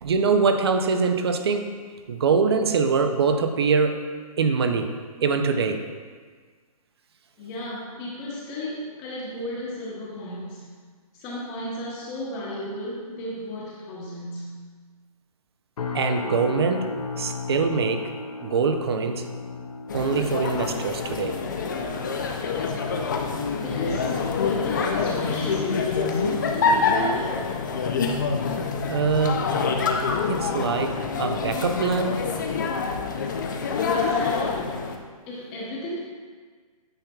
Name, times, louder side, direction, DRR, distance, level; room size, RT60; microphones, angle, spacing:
voice 1, 0.0-1.7 2.1-4.0 4.4-4.9 5.2-5.8 15.9-18.1 18.4-19.3 19.9-21.4 28.9-29.5 30.3-32.3, right 5 dB, 45° right, 6 dB, 0.5 m, -23 dB
voice 2, 7.4-10.7 11.1-14.6 23.5-24.2 24.4-27.5 33.9-34.8 35.3-36.1, left 1 dB, 15° left, -4 dB, 1.0 m, -34 dB
sound 1, 15.8-31.0 31.3-31.7 32.2-32.4, left 4 dB, 75° left, 0.8 m, -39 dB
sound 2, 19.9-35.0, left 5 dB, 30° left, 0.4 m, -26 dB
9.0 x 5.4 x 2.3 m, 1.5 s
hypercardioid pair, 165°, 19 cm